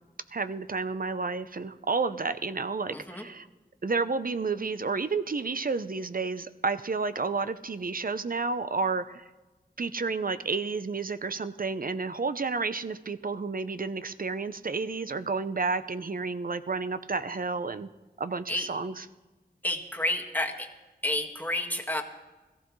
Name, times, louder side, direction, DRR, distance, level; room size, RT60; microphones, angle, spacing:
voice 1, 0.3-3.5 3.8-9.3 9.8-17.9 18.2-19.1, right 4 dB, 55° right, 12 dB, 0.6 m, -31 dB
voice 2, 2.9-3.2 18.5-18.7 19.6-20.7 21.0-22.0, left 1 dB, 10° left, 1 dB, 1.7 m, -30 dB
21.0 x 15.0 x 3.2 m, 1.2 s
wide cardioid pair, 40°, 17 cm